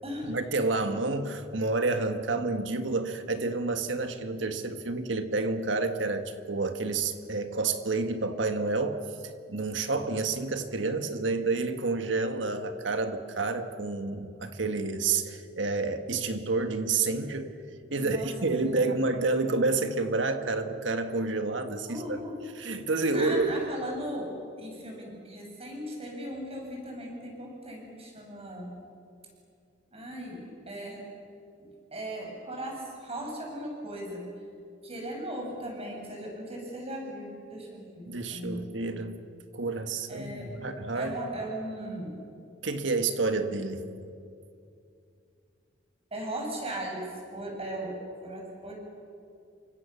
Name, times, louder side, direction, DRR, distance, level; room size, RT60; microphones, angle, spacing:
voice 1, 0.3-9.0 9.5-17.5 17.9-22.2 22.6-23.6 38.0-39.2 39.5-41.1 42.6-43.8, right 3 dB, 70° right, 7 dB, 1.7 m, -29 dB
voice 2, 18.0-18.3 18.6-18.9 21.9-22.4 23.1-24.3 24.6-28.7 29.9-31.0 31.6-34.3 34.8-38.8 40.1-40.5 40.9-42.2 46.1-47.1 47.3-48.8, right 1 dB, 35° right, 0 dB, 7.5 m, -38 dB
29.5 x 25.0 x 7.1 m, 2.5 s
head